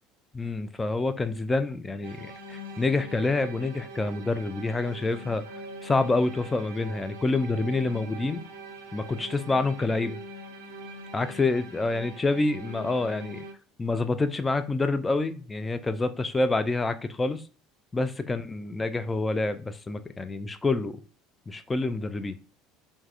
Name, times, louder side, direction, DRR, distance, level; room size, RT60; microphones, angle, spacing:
voice 1, 0.3-5.4 5.8-8.4 8.9-10.2 11.1-13.4 13.8-17.4 17.9-21.0 21.5-22.4, left 3 dB, 20° left, 0.4 m, -27 dB
sound 1, 2.0-13.5, right 1 dB, 80° right, 0.4 m, -43 dB
3.3 x 2.1 x 2.4 m
hypercardioid pair, 70°, 0 cm